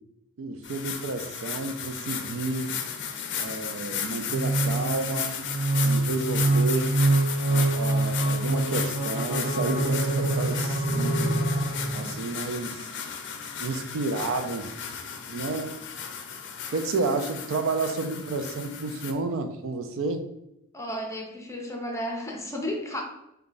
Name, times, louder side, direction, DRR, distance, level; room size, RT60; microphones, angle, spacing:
voice 1, 0.4-2.7 3.4-5.4 5.8-7.0 7.5-11.4 11.9-12.9 13.6-14.7 15.3-15.7 16.7-20.2, right 3 dB, 65° right, 7 dB, 0.4 m, -31 dB
sound 1, 0.6-19.1, left 7 dB, 55° left, 0.5 m, -35 dB
sound 2, 4.3-12.2, right 2 dB, 20° right, 0.8 m, -25 dB
voice 2, 20.7-23.0, equal, 15° left, 0 dB, 0.6 m, -33 dB
3.7 x 2.3 x 3.9 m, 0.83 s
head